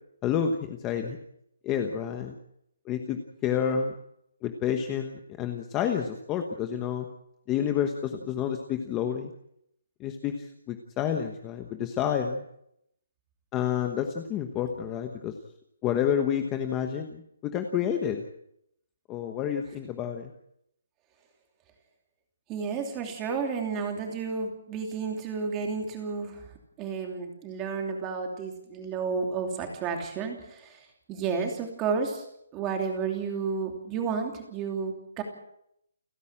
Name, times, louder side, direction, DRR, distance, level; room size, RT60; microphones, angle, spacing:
voice 1, 0.2-1.2 1.6-2.4 2.9-3.9 4.4-7.1 7.5-9.3 10.0-12.4 13.5-15.3 15.8-18.2 19.1-20.3, left 8 dB, 10° left, 5 dB, 1.1 m, -29 dB
voice 2, 22.5-32.3 32.5-35.2, right 5 dB, 15° right, 3 dB, 2.9 m, -32 dB
30.0 x 10.5 x 8.8 m, 0.75 s
hypercardioid pair, 175°, 0 cm